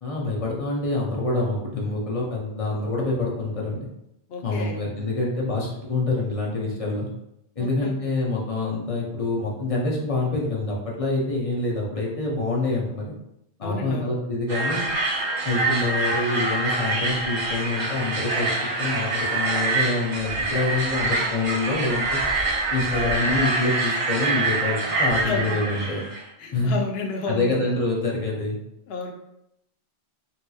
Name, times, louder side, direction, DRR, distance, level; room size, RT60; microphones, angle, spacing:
voice 1, 0.0-3.9 4.4-7.1 7.6-13.1 13.6-14.9 15.5-18.5 18.8-22.2 22.7-26.0 26.5-26.7 27.3-28.6, left 2 dB, 40° left, -3 dB, 0.6 m, -26 dB
voice 2, 4.3-4.8 7.6-7.9 13.6-14.1 24.9-25.4 26.4-27.6 28.9-29.1, left 4 dB, 70° left, 2 dB, 0.8 m, -31 dB
sound 1, 14.5-26.2, right 3 dB, 55° right, 1.1 m, -25 dB
3.7 x 2.8 x 2.3 m, 0.81 s
omnidirectional pair, 1.1 m